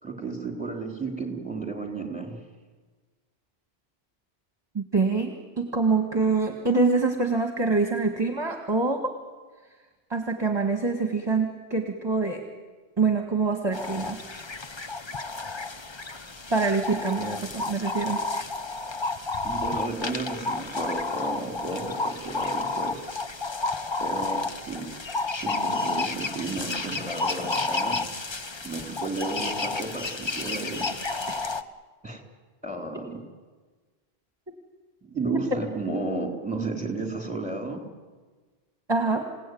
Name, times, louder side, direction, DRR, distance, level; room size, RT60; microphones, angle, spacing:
voice 1, 0.0-2.4 19.4-23.2 24.0-24.9 25.3-28.0 28.6-30.9 32.0-32.2 32.6-33.2 35.0-37.8, right 3 dB, 5° right, 2 dB, 3.9 m, -33 dB
voice 2, 4.7-9.1 10.1-12.4 13.0-14.2 16.5-18.2 31.3-31.4 38.9-39.3, right 4 dB, 25° right, 3 dB, 2.0 m, -25 dB
sound 1, 13.7-31.6, left 3 dB, 30° left, 0.9 m, -31 dB
28.0 x 17.5 x 9.5 m, 1.4 s
omnidirectional pair, 1.0 m